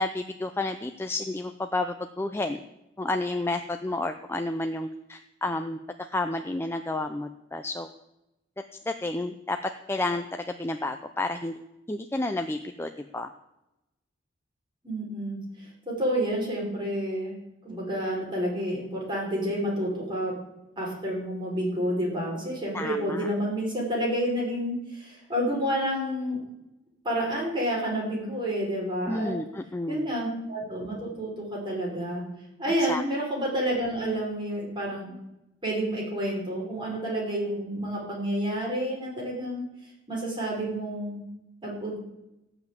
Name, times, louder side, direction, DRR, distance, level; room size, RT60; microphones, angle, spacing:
voice 1, 0.0-2.6 3.0-5.8 6.1-7.9 8.9-9.6 9.9-11.6 11.9-13.3 22.7-23.3 29.1-30.1 32.9-33.0, left 2 dB, 15° left, 6 dB, 0.5 m, -31 dB
voice 2, 14.8-15.4 15.9-17.3 17.6-20.3 20.8-26.4 27.0-29.3 29.9-32.2 32.6-35.1 35.6-39.6 40.1-41.2 41.6-42.0, equal, 25° right, -4 dB, 5.2 m, -29 dB
16.5 x 6.0 x 9.0 m, 0.91 s
head